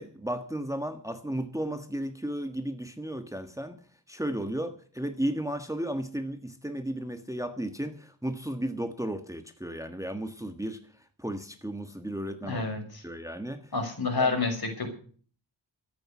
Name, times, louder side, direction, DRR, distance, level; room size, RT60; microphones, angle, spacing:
voice 1, 0.0-3.8 4.1-10.8 11.2-12.6 13.0-13.6 14.2-14.3, right 1 dB, 5° right, 7 dB, 1.6 m, -34 dB
voice 2, 12.4-13.0 13.7-14.9, left 3 dB, 55° left, 4 dB, 6.2 m, -29 dB
14.0 x 9.3 x 8.4 m, 0.43 s
wide cardioid pair, 75°, 45 cm